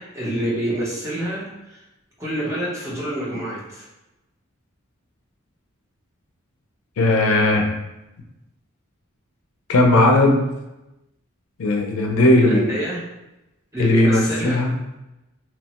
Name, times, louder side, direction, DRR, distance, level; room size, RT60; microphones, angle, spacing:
voice 1, 0.0-1.8 2.2-3.9 12.3-13.0 13.7-14.6, right 1 dB, 15° right, -7 dB, 0.7 m, -27 dB
voice 2, 7.0-7.7 9.7-10.4 11.6-12.6 13.8-14.7, left 1 dB, 90° left, 2 dB, 0.5 m, -17 dB
2.9 x 2.1 x 2.9 m, 0.95 s
head